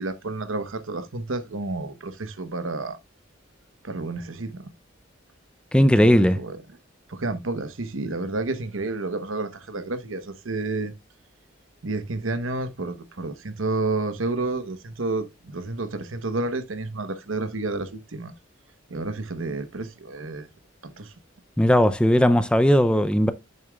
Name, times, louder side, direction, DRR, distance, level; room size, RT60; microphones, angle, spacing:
voice 1, 0.0-3.0 3.8-4.7 5.8-6.6 7.1-10.9 11.8-18.3 18.9-20.5 20.8-21.1, right 2 dB, 85° right, 1.0 m, -30 dB
voice 2, 5.7-6.4 21.6-23.3, equal, 5° left, 0.4 m, -18 dB
8.8 x 6.7 x 2.3 m
head